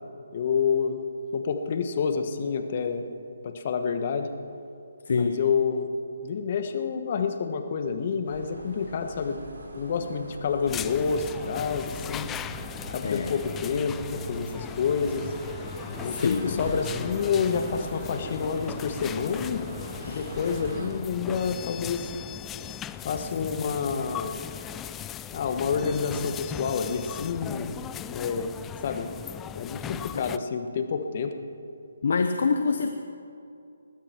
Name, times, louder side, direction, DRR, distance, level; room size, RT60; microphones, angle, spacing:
voice 1, 0.3-1.0 1.3-3.0 3.4-4.3 5.1-5.9 6.2-9.4 9.7-12.3 12.9-15.3 16.0-19.6 20.0-22.1 23.0-24.4 25.3-27.8 28.1-28.5 28.8-29.1 29.5-31.3, left 6 dB, 45° left, 7 dB, 1.4 m, -28 dB
voice 2, 5.1-5.4 13.0-13.3 16.0-16.6 20.0-20.2 30.1-30.2 32.0-32.9, left 5 dB, 60° left, 7 dB, 1.0 m, -26 dB
sound 1, 8.2-20.9, right 2 dB, 70° right, 4.9 m, -42 dB
sound 2, 10.7-30.4, left 10 dB, 15° left, 0.3 m, -38 dB
20.5 x 15.0 x 4.6 m, 2.6 s
hypercardioid pair, 150°, 0 cm